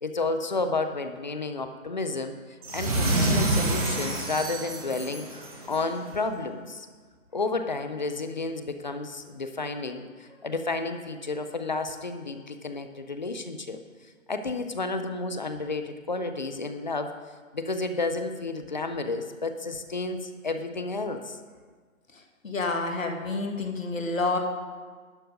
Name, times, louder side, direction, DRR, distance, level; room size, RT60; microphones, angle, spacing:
voice 1, 0.0-6.9 7.3-13.8 14.3-17.1 17.5-21.4, left 3 dB, 35° left, 8 dB, 0.6 m, -31 dB
sound 1, 2.6-5.9, right 1 dB, 25° right, 1.4 m, -27 dB
voice 2, 22.4-24.4, left 3 dB, 70° left, 3 dB, 1.9 m, -28 dB
12.0 x 7.5 x 5.1 m, 1.5 s
figure-of-eight pair, 155°, 41 cm